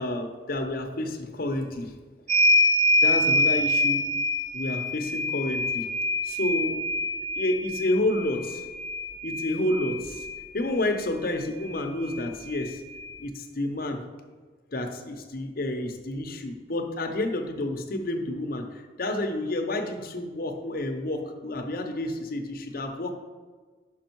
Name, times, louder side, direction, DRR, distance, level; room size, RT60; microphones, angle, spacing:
voice 1, 0.0-1.9 3.0-4.0 4.5-5.9 6.2-6.8 7.4-8.6 9.2-10.3 10.5-12.8 13.2-14.0 14.7-18.7 19.0-23.1, left 1 dB, 50° left, 4 dB, 0.8 m, -29 dB
sound 1, 2.3-10.4 11.7-11.8 12.1-13.1, left 1 dB, 40° right, 0.6 m, -25 dB
6.0 x 5.3 x 4.5 m, 1.4 s
head